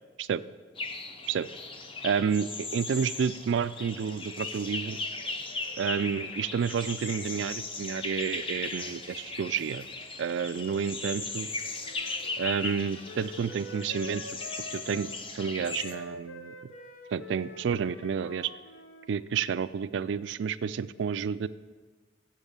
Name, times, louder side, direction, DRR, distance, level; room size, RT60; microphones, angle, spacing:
sound 1, 0.8-15.9, left 3 dB, 30° left, 0.6 m, -37 dB
voice 1, 2.0-5.0 5.8-9.9 10.2-11.5 12.4-14.4 14.7-16.5 17.1-18.5 19.1-21.5, right 7 dB, 70° right, 16 dB, 0.3 m, -30 dB
Wind instrument woodwind instrument, 11.8-19.1, left 2 dB, 85° left, 0.9 m, -46 dB
7.7 x 7.3 x 6.5 m, 1.4 s
head